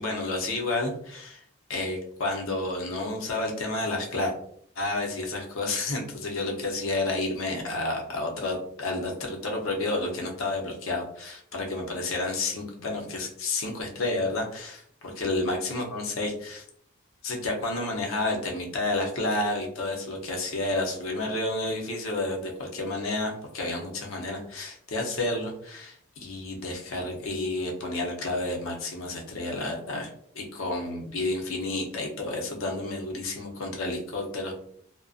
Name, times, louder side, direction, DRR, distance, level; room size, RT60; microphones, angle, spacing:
voice 1, 0.0-1.4 1.7-4.3 4.8-16.6 17.2-30.1 30.3-34.5, left 2 dB, 80° left, 1 dB, 0.6 m, -30 dB
2.4 x 2.1 x 2.5 m, 0.65 s
head